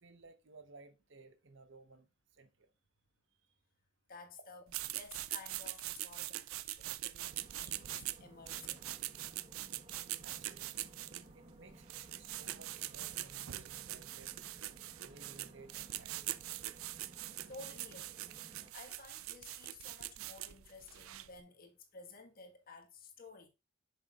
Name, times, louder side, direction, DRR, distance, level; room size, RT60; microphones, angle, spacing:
voice 1, 0.0-2.7 10.2-10.7 11.3-16.4, right 3 dB, 60° right, 1.0 m, -58 dB
voice 2, 4.1-4.6 4.9-8.8 17.5-23.5, left 4 dB, 45° left, 1.5 m, -54 dB
sound 1, 4.7-21.4, right 15 dB, 80° right, 0.4 m, -43 dB
sound 2, 7.3-18.7, right 1 dB, 30° right, 1.3 m, -58 dB
8.1 x 6.6 x 2.4 m
head